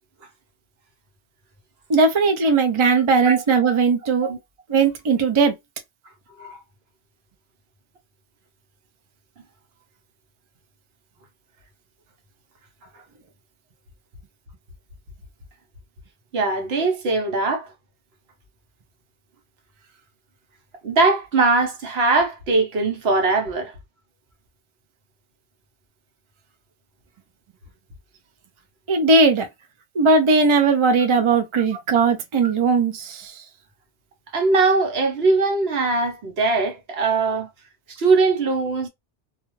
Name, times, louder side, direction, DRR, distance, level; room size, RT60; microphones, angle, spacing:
voice 1, 1.9-4.3 4.7-5.5 28.9-29.5 29.9-33.4, right 4 dB, 40° right, 0.4 m, -18 dB
voice 2, 3.2-3.8 4.2-4.4 6.4-6.6 16.3-17.7 20.8-23.8 32.4-32.5 34.3-37.5 37.9-38.9, right 3 dB, 65° right, 1.1 m, -21 dB
2.3 x 2.3 x 3.0 m
omnidirectional pair, 1.1 m